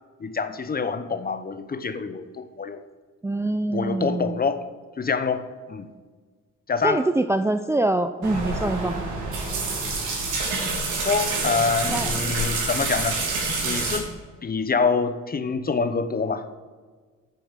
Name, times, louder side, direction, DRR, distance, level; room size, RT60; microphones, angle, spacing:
voice 1, 0.2-2.8 3.7-4.6 5.0-5.9 6.7-7.1 8.3-8.5 11.0-13.2 13.6-14.1 14.4-16.5, left 5 dB, 30° left, 11 dB, 0.9 m, -26 dB
voice 2, 3.2-4.4 6.8-8.9 11.9-12.3, right 2 dB, 10° right, 8 dB, 0.5 m, -24 dB
sound 1, 8.2-14.0, right 3 dB, 85° right, 3.2 m, -27 dB
8.5 x 7.1 x 7.4 m, 1.4 s
cardioid pair, 90°, 30 cm